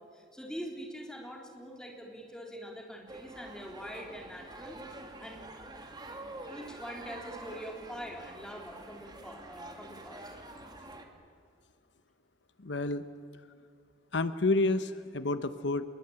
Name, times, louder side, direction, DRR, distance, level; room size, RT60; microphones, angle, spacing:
voice 1, 0.0-4.8 5.2-5.4 6.5-10.2, equal, 5° left, 0 dB, 3.9 m, -44 dB
sound 1, 3.1-11.0, right 2 dB, 25° right, 2.4 m, -47 dB
voice 2, 12.6-13.0 14.1-15.8, left 2 dB, 75° left, 11 dB, 1.0 m, -29 dB
27.0 x 22.0 x 8.9 m, 2.3 s
head